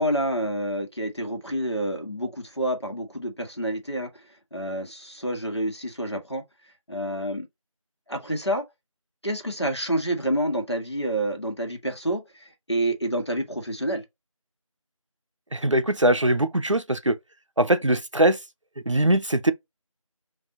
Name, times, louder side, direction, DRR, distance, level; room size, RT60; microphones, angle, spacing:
voice 1, 0.0-4.1 4.5-6.4 6.9-7.5 8.1-8.6 9.2-14.0, right 1 dB, 50° left, 1.4 m, -28 dB
voice 2, 15.5-17.2 17.6-18.4 18.9-19.5, right 1 dB, 60° right, 0.6 m, -21 dB
5.3 x 2.7 x 2.7 m
figure-of-eight pair, 180°, 18 cm